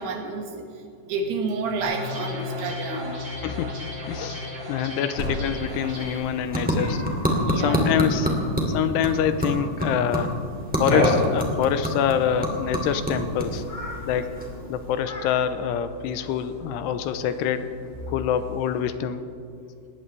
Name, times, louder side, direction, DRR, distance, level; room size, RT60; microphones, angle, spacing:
voice 1, 0.0-3.2 4.1-4.2 4.9-5.0 7.5-7.9, right 3 dB, 75° right, 2 dB, 3.7 m, -30 dB
sound 1, 1.8-6.2, left 2 dB, 45° right, 5.4 m, -35 dB
voice 2, 3.4-3.7 4.1-7.0 7.3-8.3 8.7-10.4 10.8-13.7 14.1-14.3 14.7-17.7 18.1-19.2, left 9 dB, 85° left, 10 dB, 2.8 m, -26 dB
Cat, 5.2-18.8, left 1 dB, 45° left, 5.9 m, -34 dB
sound 2, 5.6-15.0, equal, 5° right, 1.1 m, -28 dB
20.0 x 18.5 x 3.3 m, 2.4 s
omnidirectional pair, 4.9 m